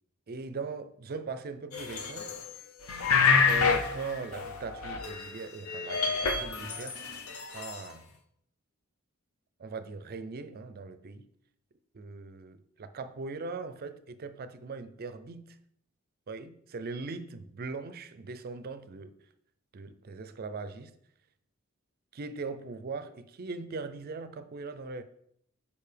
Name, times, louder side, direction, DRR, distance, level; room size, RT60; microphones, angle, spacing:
voice 1, 0.3-2.3 3.5-7.0 7.5-8.0 9.6-11.2 11.9-15.6 16.3-19.1 19.7-20.9 22.1-25.0, right 4 dB, 45° right, 0.4 m, -40 dB
sound 1, 1.7-2.5 2.8-5.4 5.6-7.8, left 5 dB, 75° left, 0.7 m, -28 dB
6.7 x 5.3 x 3.3 m
head